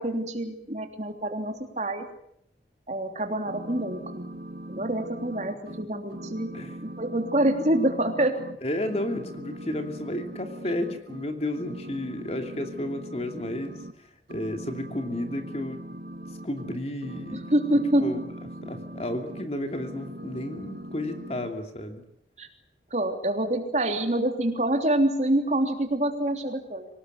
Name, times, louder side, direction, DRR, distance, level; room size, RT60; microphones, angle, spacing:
voice 1, 0.0-2.0 2.9-4.2 4.7-6.5 6.8-8.4 17.3-18.2 22.4-22.5 22.9-26.9, right 1 dB, 40° right, 5 dB, 3.2 m, -26 dB
sound 1, 3.5-8.6 8.8-11.3 11.5-13.9 14.3-19.5 19.7-21.5, right 1 dB, 65° right, 1.9 m, -40 dB
voice 2, 8.6-15.8 16.4-17.4 18.0-18.2 18.6-22.0, left 1 dB, 35° left, 6 dB, 2.8 m, -32 dB
25.0 x 19.0 x 9.6 m, 0.73 s
head